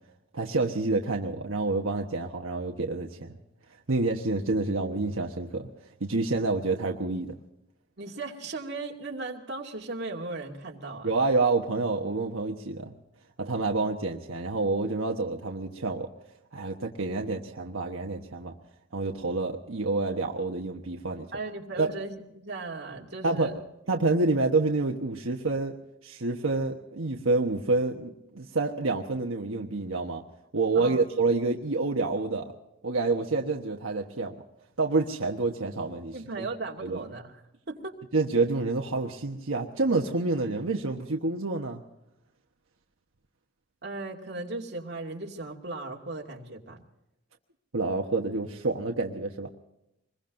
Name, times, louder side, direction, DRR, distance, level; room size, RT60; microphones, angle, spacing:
voice 1, 0.3-3.3 3.9-5.7 6.0-7.4 11.0-12.9 13.4-16.1 16.5-18.5 18.9-21.3 21.7-21.9 23.2-23.5 23.9-25.7 26.0-30.2 30.5-32.5 32.8-34.4 34.8-36.5 36.8-37.0 38.1-41.8 47.7-49.5, right 3 dB, 80° right, 1 dB, 1.2 m, -28 dB
voice 2, 8.0-11.1 21.3-23.5 30.7-31.0 36.1-37.4 37.7-38.0 43.8-46.8, right 3 dB, 50° right, -1 dB, 2.4 m, -37 dB
25.5 x 21.5 x 2.6 m, 0.87 s
head